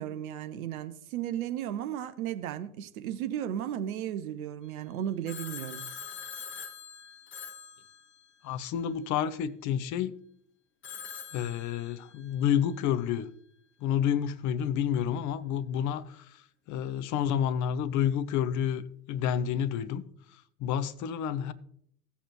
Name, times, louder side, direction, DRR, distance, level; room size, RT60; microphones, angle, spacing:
voice 1, 0.0-5.9, right 10 dB, 70° right, 0.9 m, -35 dB
Telephone, 5.3-8.6 10.8-12.3, left 7 dB, 25° left, 1.2 m, -43 dB
voice 2, 8.4-10.2 11.3-13.3 13.8-18.8 19.1-20.0 20.3-21.5, left 9 dB, 40° left, 0.8 m, -29 dB
16.0 x 7.0 x 3.0 m
figure-of-eight pair, 75°, 44 cm